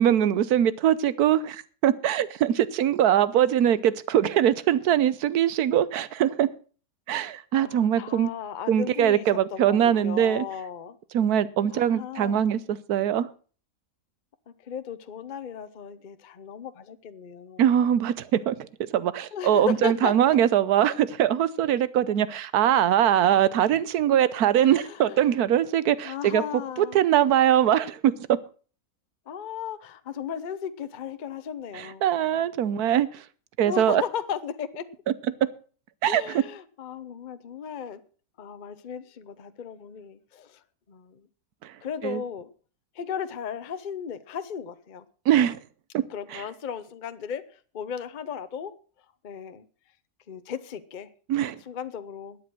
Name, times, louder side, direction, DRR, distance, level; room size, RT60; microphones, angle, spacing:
voice 1, 0.0-6.5 7.1-8.3 8.7-10.5 11.1-13.3 17.6-18.7 18.9-26.4 26.8-28.3 31.7-33.2 33.6-34.0 36.0-36.4 41.6-41.7 42.0-42.2 45.3-45.6 45.9-46.0 46.3-46.4 51.3-51.6, right 10 dB, 90° right, 1.3 m, -22 dB
voice 2, 7.6-11.0 11.7-12.5 14.7-17.6 19.3-20.1 24.6-25.2 26.0-27.0 29.3-32.0 33.6-34.8 36.1-38.0 38.4-40.6 40.9-41.2 41.8-42.5 43.0-45.0 46.1-47.4 47.7-48.7 49.2-49.6 50.3-51.1 51.7-52.4, left 8 dB, 40° left, 0.8 m, -35 dB
12.5 x 9.5 x 6.1 m
omnidirectional pair, 1.6 m